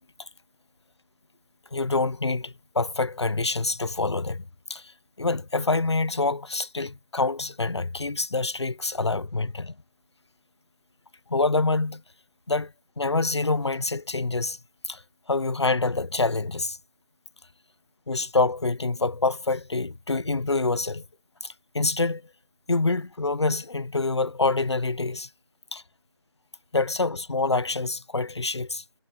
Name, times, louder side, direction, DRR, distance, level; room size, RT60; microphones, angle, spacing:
voice 1, 1.7-9.7 11.3-12.0 12.5-14.6 14.8-15.0 15.3-16.8 18.1-21.0 21.4-22.2 22.7-25.3 25.7-25.8 26.7-28.8, left 3 dB, 70° left, 0.8 m, -26 dB
figure-of-eight pair, 175°, 15 cm